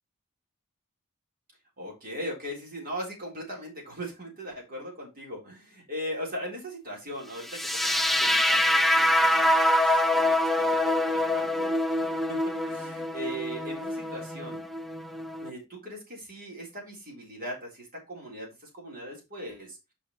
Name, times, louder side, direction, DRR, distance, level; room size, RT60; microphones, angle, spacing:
voice 1, 1.8-12.4 12.6-14.7 15.4-19.8, equal, 40° right, -1 dB, 3.7 m, -39 dB
sound 1, 7.5-15.5, left 1 dB, ahead, 0.4 m, -25 dB
5.7 x 5.2 x 4.6 m, 0.24 s
head